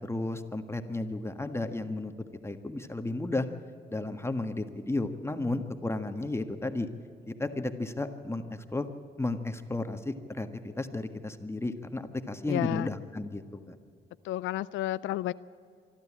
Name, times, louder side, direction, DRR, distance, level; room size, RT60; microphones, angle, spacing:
voice 1, 0.1-2.1 2.4-3.4 3.9-6.9 7.3-8.9 9.2-13.8, left 2 dB, 15° left, 7 dB, 1.6 m, -33 dB
voice 2, 12.5-12.9 14.2-15.3, left 15 dB, 85° left, 16 dB, 0.4 m, -31 dB
25.5 x 12.0 x 8.7 m, 2.3 s
cardioid pair, 75°, 19 cm